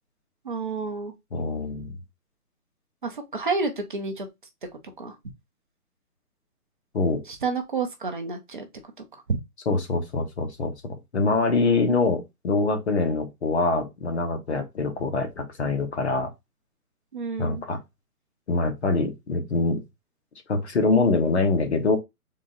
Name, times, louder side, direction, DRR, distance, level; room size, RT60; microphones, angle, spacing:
voice 1, 0.4-1.1 3.0-4.3 5.0-5.2 7.3-8.7 9.3-9.4 17.1-17.6, right 4 dB, 35° right, 0.6 m, -29 dB
voice 2, 1.3-1.9 6.9-7.2 9.7-10.7 11.1-16.3 17.4-17.8 18.5-19.8 20.5-22.0, left 3 dB, 45° left, 1.0 m, -24 dB
3.7 x 2.7 x 3.8 m
hypercardioid pair, 160°, 46 cm